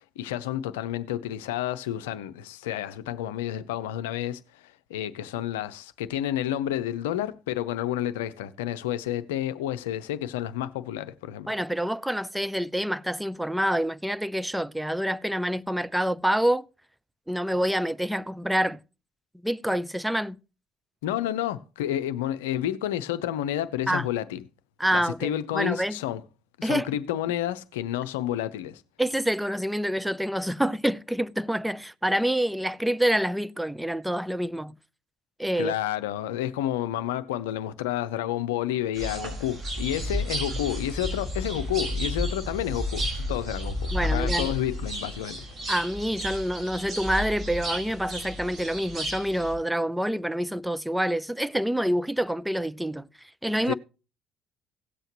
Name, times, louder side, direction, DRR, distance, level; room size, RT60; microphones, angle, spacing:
voice 1, 0.2-11.5 21.0-24.4 24.9-26.2 26.6-28.8 35.6-45.4 53.7-53.8, left 12 dB, 75° left, 0.6 m, -30 dB
voice 2, 11.5-16.7 17.3-18.8 19.4-20.4 23.9-24.1 24.8-26.0 26.6-26.9 29.0-34.7 35.4-35.7 43.9-44.5 45.7-53.1 53.4-53.7, equal, 5° right, 0.5 m, -27 dB
sound 1, 38.9-49.5, equal, 40° right, 4.7 m, -32 dB
17.0 x 7.7 x 3.0 m
figure-of-eight pair, 55°, 0 cm